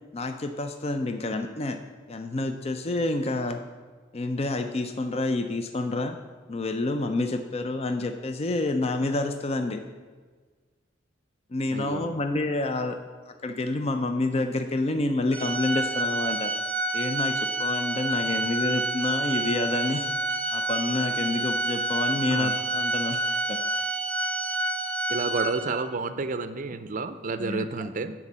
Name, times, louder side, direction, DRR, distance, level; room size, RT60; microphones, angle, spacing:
voice 1, 0.1-1.8 2.1-3.6 4.1-6.2 6.5-9.8 11.5-13.0 13.3-16.5 16.9-23.2 23.5-23.6 27.4-27.7, left 2 dB, 30° left, 7 dB, 0.5 m, -28 dB
voice 2, 11.7-12.1 18.3-18.4 22.3-22.5 25.1-28.1, right 3 dB, 40° right, 11 dB, 0.5 m, -30 dB
Organ, 15.3-26.0, right 1 dB, 5° left, 1.3 m, -28 dB
10.5 x 4.4 x 7.3 m, 1.5 s
head